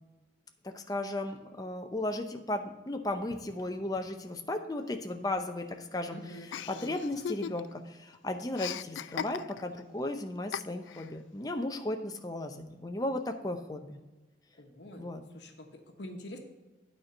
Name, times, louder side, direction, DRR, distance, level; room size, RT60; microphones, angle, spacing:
voice 1, 0.6-6.2 6.7-14.0 15.0-15.2, left 1 dB, 20° left, 5 dB, 0.6 m, -35 dB
voice 2, 6.1-7.0 14.6-16.4, left 1 dB, 65° left, 4 dB, 1.2 m, -46 dB
Chuckle chortle, 6.5-7.9 8.1-9.8 10.5-11.1, left 8 dB, 85° left, 0.3 m, -38 dB
9.3 x 4.5 x 6.4 m, 1.2 s
head